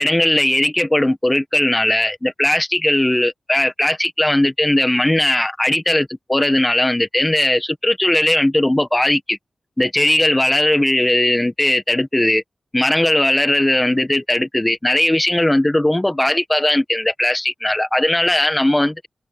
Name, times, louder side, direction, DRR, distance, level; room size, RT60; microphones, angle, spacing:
voice 1, 0.0-9.4 9.8-12.4 12.7-19.1, left 1 dB, 15° left, 1.6 m, -18 dB
wide cardioid pair, 90°, 0 cm